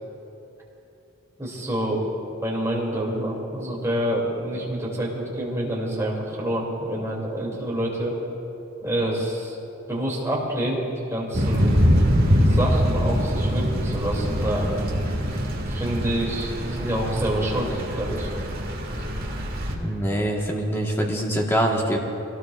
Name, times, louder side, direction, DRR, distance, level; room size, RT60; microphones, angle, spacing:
voice 1, 1.4-2.0 2.4-8.1 8.8-9.6 9.9-11.7 12.5-14.8 15.7-18.3, right 1 dB, 15° right, -4 dB, 2.8 m, -27 dB
Thunder / Rain, 11.3-19.7, equal, 45° right, 1.9 m, -23 dB
voice 2, 19.8-22.0, right 1 dB, 10° left, -1 dB, 1.4 m, -24 dB
23.0 x 17.5 x 2.5 m, 2.9 s
head